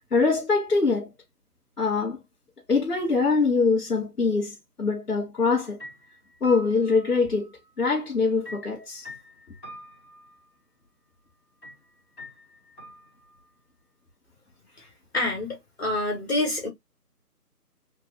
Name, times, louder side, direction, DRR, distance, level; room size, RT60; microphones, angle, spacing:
voice 1, 0.1-1.1 1.8-2.2 2.7-5.8 6.4-7.5 7.8-9.0, left 4 dB, 65° left, 2.0 m, -23 dB
sound 1, 5.4-5.5 5.8-7.7 8.4-10.5 11.6-11.8 12.2-13.5, equal, 15° left, 2.1 m, -45 dB
voice 2, 15.1-16.7, left 2 dB, 40° left, 1.3 m, -27 dB
3.5 x 3.0 x 2.6 m
figure-of-eight pair, 155°, 47 cm